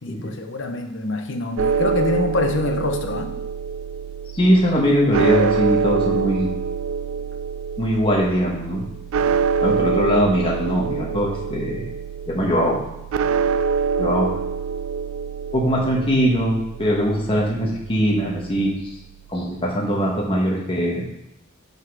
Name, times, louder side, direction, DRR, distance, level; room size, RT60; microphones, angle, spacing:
voice 1, 0.0-3.3, left 2 dB, 60° left, 4 dB, 0.9 m, -25 dB
sound 1, 1.6-19.4, right 5 dB, 85° right, 0.3 m, -25 dB
voice 2, 4.3-6.5 7.8-8.8 9.6-11.9 12.3-12.8 14.0-14.4 15.5-18.7 19.3-21.1, equal, 25° left, -3 dB, 1.3 m, -21 dB
6.1 x 5.6 x 4.7 m, 0.90 s
head